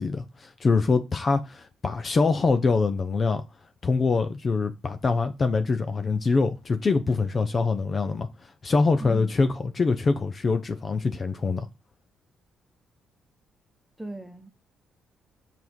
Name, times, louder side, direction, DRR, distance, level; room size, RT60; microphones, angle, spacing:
voice 1, 0.0-3.4 3.8-8.3 8.6-11.7, left 4 dB, 35° left, 0.6 m, -24 dB
voice 2, 9.0-9.5 14.0-14.5, right 2 dB, 5° right, 1.2 m, -38 dB
6.0 x 3.6 x 4.5 m
cardioid pair, 90°, 0 cm